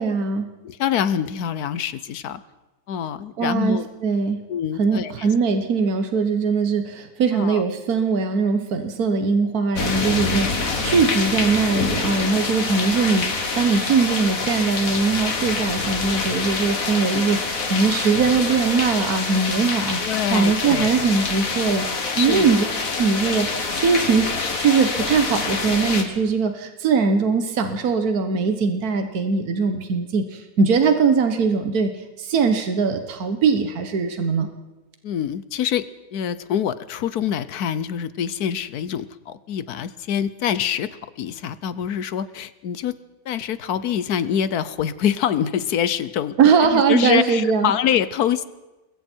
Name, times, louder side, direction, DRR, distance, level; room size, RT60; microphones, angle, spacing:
voice 1, 0.0-0.5 3.4-4.4 4.8-22.6 23.0-24.3 24.6-34.5 46.4-47.7, right 5 dB, 80° right, 7 dB, 1.7 m, -21 dB
voice 2, 0.6-2.4 2.9-3.9 4.5-5.3 7.3-7.6 12.7-12.8 17.1-17.2 20.0-21.0 22.1-22.5 35.0-35.9 36.1-40.9 41.2-42.9 43.2-46.4 46.7-48.4, left 9 dB, 90° left, 15 dB, 1.4 m, -25 dB
sound 1, 9.7-26.0, left 4 dB, 65° left, 2.3 m, -26 dB
27.5 x 21.5 x 4.5 m, 1.1 s
omnidirectional pair, 1.6 m